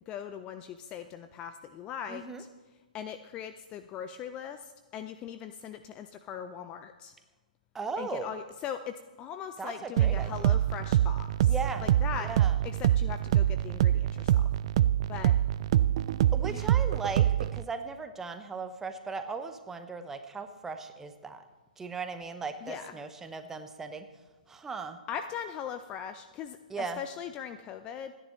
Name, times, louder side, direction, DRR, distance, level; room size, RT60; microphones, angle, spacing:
voice 1, 0.1-2.5 2.9-7.1 8.0-11.5 11.8-12.3 12.6-14.5 15.1-15.3 16.5-16.7 22.6-22.9 25.1-28.1, left 8 dB, 20° left, 9 dB, 0.5 m, -40 dB
voice 2, 2.1-2.4 7.7-8.4 9.6-10.5 11.5-11.9 12.2-12.5 16.3-21.4 21.8-24.1 24.5-25.0 26.7-27.0, right 4 dB, 10° right, 8 dB, 0.9 m, -37 dB
sound 1, 10.0-17.6, right 11 dB, 40° right, 0.4 m, -25 dB
27.5 x 10.5 x 3.1 m, 1.3 s
figure-of-eight pair, 125°, 5 cm